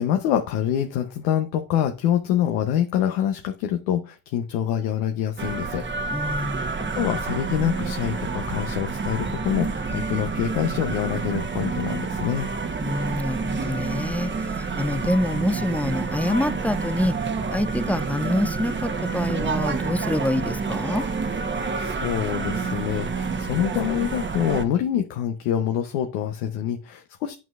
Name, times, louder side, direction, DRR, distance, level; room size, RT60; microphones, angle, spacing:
voice 1, 0.0-5.8 6.9-12.5 21.8-27.3, left 10 dB, 85° left, 0.9 m, -25 dB
sound 1, 5.4-24.7, right 4 dB, 25° right, 1.0 m, -28 dB
voice 2, 6.1-6.7 12.8-14.3 14.6-17.2 17.5-21.1, left 1 dB, 5° left, 0.3 m, -26 dB
9.3 x 5.8 x 2.4 m
supercardioid pair, 70°, 43 cm